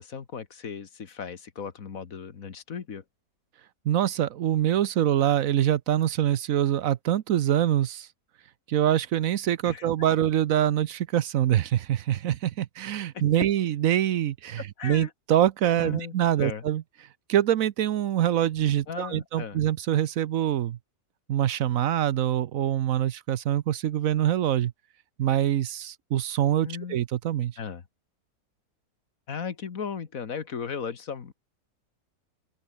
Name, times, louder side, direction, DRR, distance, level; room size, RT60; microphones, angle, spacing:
voice 1, 0.0-3.0 9.7-9.9 14.6-15.1 15.8-16.6 18.9-19.6 26.6-27.0 27.6-27.8 29.3-31.3, left 6 dB, 65° left, 1.9 m, -36 dB
voice 2, 3.8-8.1 8.7-16.8 17.3-20.8 21.3-24.7 25.2-27.6, right 11 dB, 70° right, 1.1 m, -25 dB
omnidirectional pair, 1.6 m